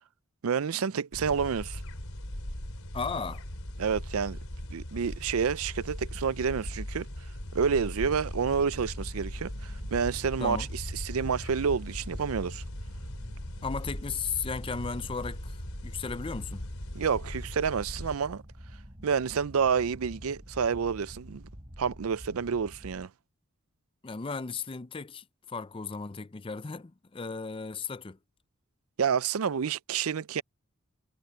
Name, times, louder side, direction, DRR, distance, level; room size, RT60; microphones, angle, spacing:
voice 1, 0.4-1.8 3.8-4.4 4.7-7.1 7.5-12.6 16.9-18.4 19.0-21.5 21.8-23.1 29.0-30.4, right 6 dB, 85° right, 0.5 m, -29 dB
sound 1, 1.1-18.2, left 1 dB, 85° left, 3.9 m, -39 dB
voice 2, 2.9-3.4 10.4-10.7 13.6-16.7 24.0-28.2, left 5 dB, 25° left, 0.5 m, -35 dB
sound 2, 7.4-23.1, equal, 30° right, 6.3 m, -47 dB
head